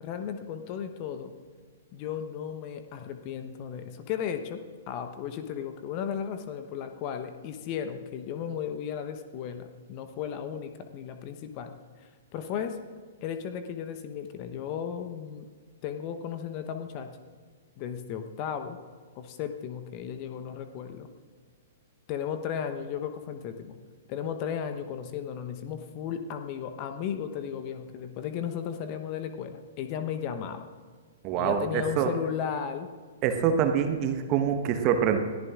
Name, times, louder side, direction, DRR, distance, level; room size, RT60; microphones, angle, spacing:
voice 1, 0.0-1.3 1.9-12.8 13.2-15.5 15.8-17.1 17.8-18.8 19.2-21.1 22.1-23.8 24.1-30.6 31.3-32.9, left 8 dB, 35° left, 8 dB, 0.9 m, -35 dB
voice 2, 31.2-32.1 33.2-35.2, right 8 dB, 35° right, 7 dB, 1.1 m, -25 dB
21.5 x 14.0 x 2.5 m, 1.5 s
figure-of-eight pair, 110°, 0 cm